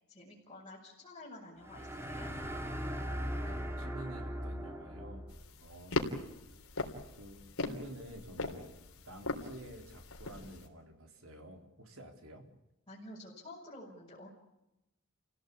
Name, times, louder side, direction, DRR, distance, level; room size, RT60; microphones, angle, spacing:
voice 1, 0.1-2.3 12.9-14.3, left 1 dB, 20° left, -6 dB, 5.8 m, -50 dB
sound 1, 1.6-5.4, equal, 10° right, 2.8 m, -39 dB
voice 2, 3.4-5.3 5.6-6.4 7.2-8.8 9.1-12.5, right 1 dB, 80° right, 4 dB, 4.2 m, -50 dB
sound 2, 5.3-10.7, left 2 dB, 90° left, 3.5 m, -40 dB
29.5 x 17.0 x 8.7 m, 0.90 s
head